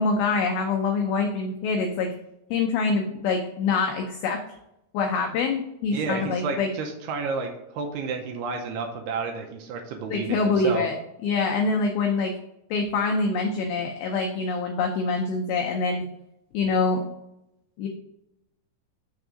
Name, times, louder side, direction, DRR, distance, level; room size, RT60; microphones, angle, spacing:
voice 1, 0.0-2.1 2.5-4.4 4.9-6.7 10.1-10.9 11.2-12.3 12.7-16.1 16.5-17.0 17.8-17.9, left 4 dB, 90° left, 3 dB, 2.1 m, -25 dB
voice 2, 5.9-10.8, right 4 dB, 80° right, 2 dB, 2.5 m, -31 dB
6.7 x 3.5 x 6.2 m, 0.84 s
omnidirectional pair, 5.1 m